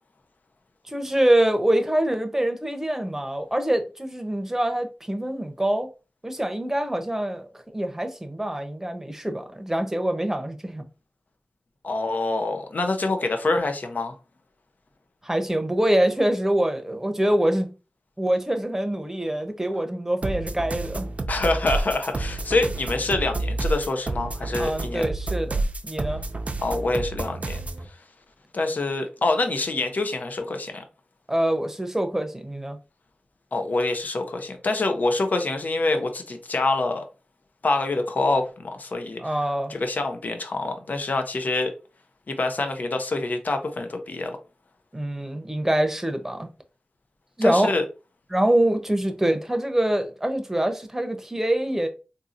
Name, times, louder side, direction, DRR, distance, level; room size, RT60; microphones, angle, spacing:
voice 1, 0.8-5.9 6.2-10.9 15.2-17.7 18.2-21.1 24.6-26.2 31.3-32.8 39.2-39.7 44.9-46.5 47.4-47.7 48.3-51.9, right 1 dB, 15° right, 0.7 m, -25 dB
voice 2, 11.8-14.2 21.3-25.1 26.6-27.6 28.5-30.8 33.5-37.1 37.6-39.3 39.7-41.7 42.3-44.4 47.4-47.8, left 2 dB, 70° left, 0.6 m, -26 dB
sound 1, 20.2-27.8, right 2 dB, 50° right, 0.5 m, -29 dB
3.8 x 2.7 x 2.5 m
wide cardioid pair, 55°, 3 cm